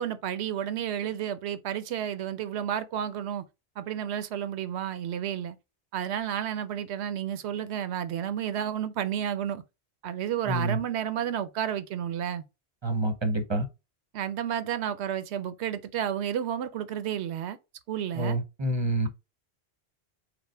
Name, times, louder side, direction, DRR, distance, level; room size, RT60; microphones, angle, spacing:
voice 1, 0.0-3.4 3.8-5.6 5.9-9.6 10.0-12.4 14.1-17.6 17.9-18.4, right 9 dB, 85° right, 0.9 m, -31 dB
voice 2, 10.4-10.8 12.8-13.7 18.1-19.1, right 1 dB, 30° right, 0.8 m, -27 dB
5.2 x 2.1 x 4.4 m
omnidirectional pair, 1.1 m